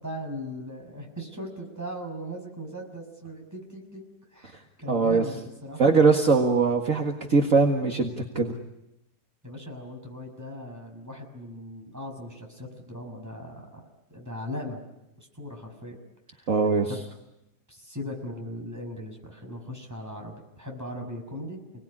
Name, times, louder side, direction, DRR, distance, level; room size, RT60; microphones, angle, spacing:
voice 1, 0.0-4.0 4.3-4.5 4.8-5.8 9.4-13.8 14.1-14.8 15.2-16.0 16.3-16.5 16.9-17.0 17.7-21.8, equal, 10° right, 1 dB, 6.2 m, -38 dB
voice 2, 4.9-5.2 5.8-8.6 16.5-16.9, right 4 dB, 50° right, 2 dB, 2.2 m, -21 dB
29.5 x 20.0 x 10.0 m, 0.91 s
omnidirectional pair, 1.8 m